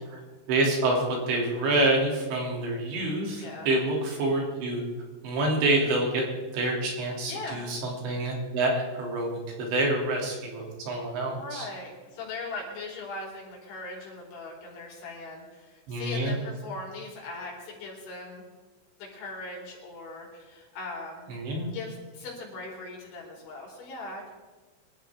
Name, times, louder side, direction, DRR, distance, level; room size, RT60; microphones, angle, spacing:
voice 1, 0.5-4.8 5.2-6.3 6.5-11.7 15.9-16.4 21.3-21.7, right 2 dB, 65° right, -1 dB, 5.2 m, -27 dB
voice 2, 3.4-3.7 7.3-7.6 11.3-18.4 19.0-24.3, left 3 dB, 70° left, -1 dB, 6.3 m, -40 dB
24.5 x 13.0 x 3.7 m, 1.4 s
omnidirectional pair, 5.6 m